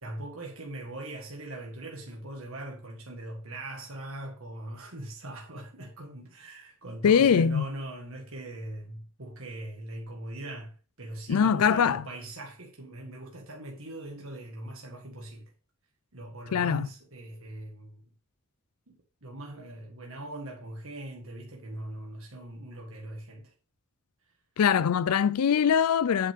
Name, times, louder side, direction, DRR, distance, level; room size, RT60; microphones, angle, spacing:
voice 1, 0.0-15.5 16.1-18.0 18.9-19.0 19.2-23.5, right 1 dB, 65° right, 1.7 m, -41 dB
voice 2, 7.0-7.7 11.3-12.0 16.5-16.9 24.6-26.3, left 7 dB, 85° left, 0.4 m, -22 dB
8.6 x 6.6 x 3.6 m
head